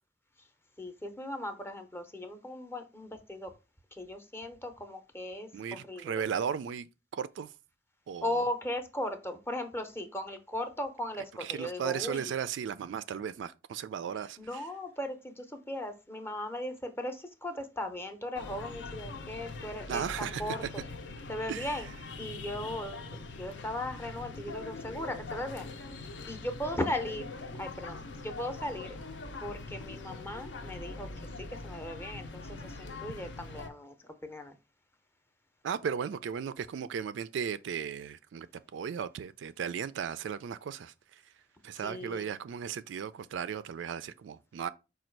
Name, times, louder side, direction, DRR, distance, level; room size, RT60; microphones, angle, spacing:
voice 1, 0.8-3.5 3.9-6.2 8.2-12.3 14.4-20.6 21.3-21.9 22.2-25.7 26.3-29.0 29.4-31.1 31.4-34.6 41.8-42.3, left 1 dB, 10° left, 0.6 m, -37 dB
voice 2, 5.5-7.5 8.1-8.4 11.4-14.6 19.9-20.6 21.5-21.7 35.6-38.5 38.7-41.2 41.6-44.7, right 7 dB, 70° right, 0.3 m, -36 dB
sound 1, 18.4-33.7, left 3 dB, 65° left, 0.6 m, -43 dB
5.1 x 2.3 x 4.4 m
head